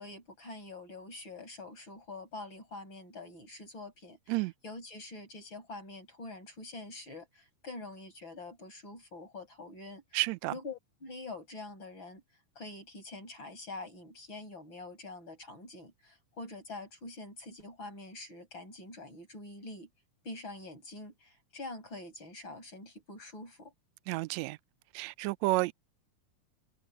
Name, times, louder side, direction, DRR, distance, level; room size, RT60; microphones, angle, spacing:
voice 1, 0.0-4.4 4.6-10.2 10.5-12.2 12.6-19.9 20.2-23.7, left 2 dB, 40° left, 8.9 m, -45 dB
voice 2, 10.1-10.5 24.1-24.6 24.9-25.7, right 21 dB, 80° right, 1.7 m, -30 dB
omnidirectional pair, 3.4 m